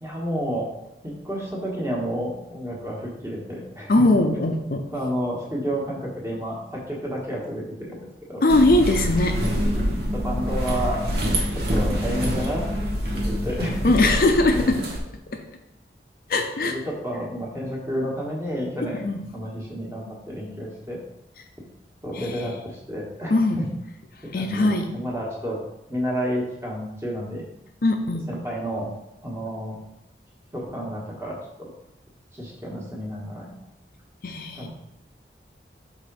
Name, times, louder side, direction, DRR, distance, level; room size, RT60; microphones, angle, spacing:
voice 1, 0.0-0.7 1.0-3.9 4.8-8.4 10.0-11.0 11.5-12.6 13.1-13.8 14.5-14.7 16.6-19.0 19.3-21.0 22.0-23.6 24.3-25.6 25.9-27.4 28.3-28.9 29.2-29.8 30.5-31.7 32.3-33.5 34.5-34.7, equal, 15° right, -4 dB, 1.4 m, -30 dB
voice 2, 3.9-4.8 8.4-9.4 13.8-14.9 15.3-15.4 16.3-16.8 18.9-19.2 22.1-22.5 23.3-23.6 24.3-24.9 27.8-28.3 34.2-34.7, left 2 dB, 55° left, 4 dB, 0.5 m, -20 dB
sound 1, 8.5-15.0, equal, 65° right, 1.2 m, -26 dB
6.0 x 3.7 x 4.7 m, 0.86 s
head